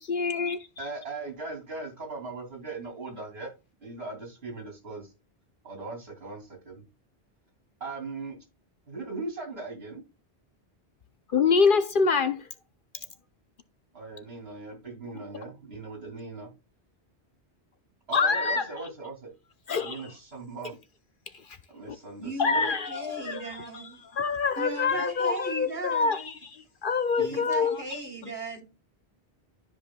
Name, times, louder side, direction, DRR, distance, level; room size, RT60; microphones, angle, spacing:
voice 1, 0.0-0.6 11.3-12.5 18.1-18.7 19.7-20.1 21.5-21.6 21.9-22.0 22.4-27.8, left 5 dB, 60° left, 0.8 m, -26 dB
voice 2, 0.8-3.5 3.8-5.1 5.6-6.8 7.8-8.4 8.9-10.0 13.9-16.5 18.1-19.3 19.8-20.8 21.7-22.7, right 3 dB, 70° right, 3.0 m, -39 dB
voice 3, 22.2-24.0 24.6-26.3 27.2-28.6, right 2 dB, 45° right, 3.8 m, -37 dB
12.5 x 5.2 x 2.2 m
omnidirectional pair, 1.1 m